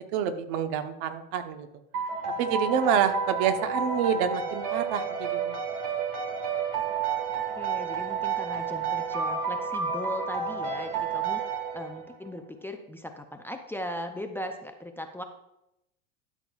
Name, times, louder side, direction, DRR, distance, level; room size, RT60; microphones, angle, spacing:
voice 1, 0.1-1.7 2.4-5.6, right 8 dB, 55° right, 8 dB, 1.1 m, -27 dB
sound 1, 1.9-12.3, right 5 dB, 90° right, 1.8 m, -30 dB
voice 2, 7.3-15.2, left 1 dB, 5° left, 6 dB, 0.4 m, -38 dB
12.5 x 7.1 x 2.4 m, 0.86 s
supercardioid pair, 110°, 44 cm